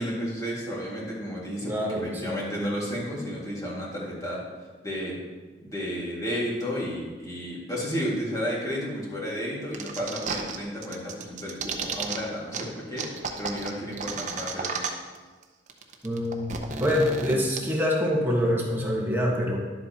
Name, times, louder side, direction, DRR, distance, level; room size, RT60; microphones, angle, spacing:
voice 1, 0.0-4.4 4.8-5.2 5.6-14.8 17.3-17.4, equal, 20° left, -5 dB, 2.1 m, -32 dB
voice 2, 1.6-2.4 16.0-19.6, left 1 dB, 10° right, -3 dB, 1.4 m, -26 dB
sound 1, 9.7-10.6 10.8-12.2 12.5-12.6 13.0-15.2 15.4-15.5 15.7-17.6, right 5 dB, 45° right, 0.8 m, -32 dB
11.0 x 7.7 x 2.9 m, 1.3 s
head